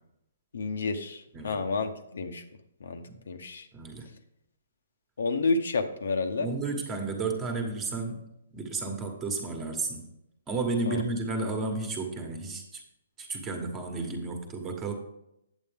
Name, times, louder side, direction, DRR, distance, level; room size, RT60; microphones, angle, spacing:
voice 1, 0.5-2.4 2.8-3.7 5.2-6.5 10.9-11.0, left 3 dB, 80° left, 7 dB, 0.9 m, -30 dB
voice 2, 3.7-4.1 6.4-8.3 8.5-10.1 10.5-12.8 13.2-14.9, right 3 dB, 15° right, 4 dB, 1.2 m, -32 dB
8.3 x 8.2 x 3.5 m, 0.82 s
hypercardioid pair, 160°, 0 cm